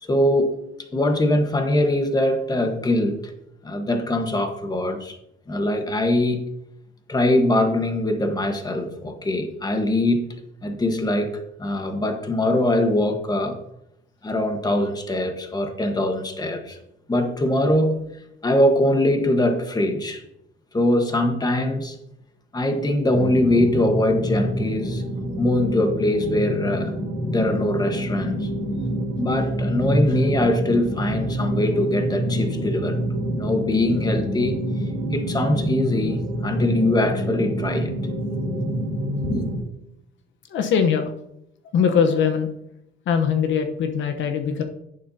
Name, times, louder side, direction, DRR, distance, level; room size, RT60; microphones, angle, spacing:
voice 1, 0.0-0.6 0.9-3.3 3.6-5.2 5.5-6.4 7.1-10.3 10.6-13.6 14.2-16.8 17.1-18.0 18.4-20.2 20.7-22.0 22.5-25.0 25.4-26.9 27.3-28.5 29.2-33.0 33.4-34.6 35.1-37.9 39.3-39.5, left 1 dB, 20° left, 1.3 m, -22 dB
sound 1, 23.1-39.6, equal, 75° right, 3.6 m, -27 dB
voice 2, 40.5-41.1 41.7-42.5 43.1-44.6, left 7 dB, 70° left, 1.0 m, -21 dB
11.0 x 8.7 x 2.8 m
cardioid pair, 110°, 20 cm